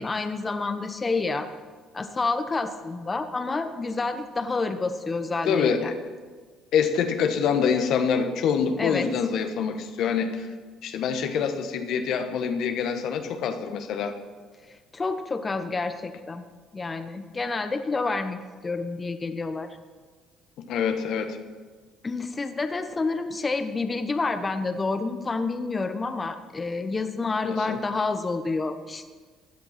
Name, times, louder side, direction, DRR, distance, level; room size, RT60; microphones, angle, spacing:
voice 1, 0.0-1.5 1.9-5.9 8.8-9.1 14.9-16.4 16.7-19.7 22.0-29.1, left 3 dB, 30° left, 8 dB, 1.1 m, -29 dB
voice 2, 5.5-5.9 6.7-10.5 10.8-14.1 20.6-21.4 27.4-27.8, left 6 dB, 70° left, 7 dB, 1.3 m, -25 dB
16.0 x 10.5 x 5.9 m, 1.5 s
supercardioid pair, 70°, 0 cm